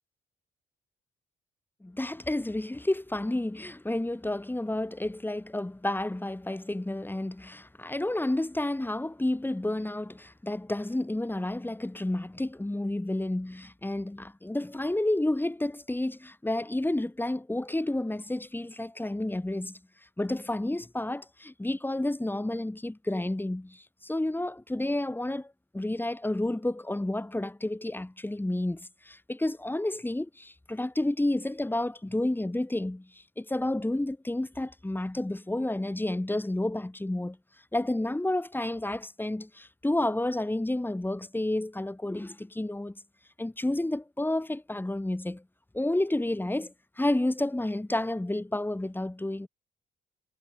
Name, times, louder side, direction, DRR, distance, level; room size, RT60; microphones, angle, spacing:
voice 1, 1.8-19.8 20.2-25.5 25.7-33.1 33.4-37.4 37.7-43.0 43.4-45.4 45.7-49.5, left 1 dB, 10° left, 7.3 m, -30 dB
cardioid pair, 90°, 20 cm